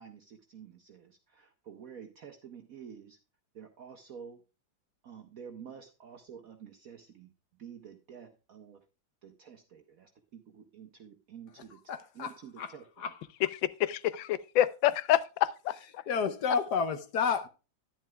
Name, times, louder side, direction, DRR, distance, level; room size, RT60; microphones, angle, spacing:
voice 1, 0.0-3.2 3.5-4.4 5.0-7.3 7.6-8.8 9.2-11.8 12.1-12.8, right 7 dB, 55° right, 1.1 m, -49 dB
voice 2, 11.7-13.2 16.1-17.5, left 6 dB, 65° left, 1.3 m, -31 dB
voice 3, 13.8-15.7, left 12 dB, 85° left, 1.4 m, -27 dB
10.5 x 10.5 x 2.3 m
omnidirectional pair, 2.0 m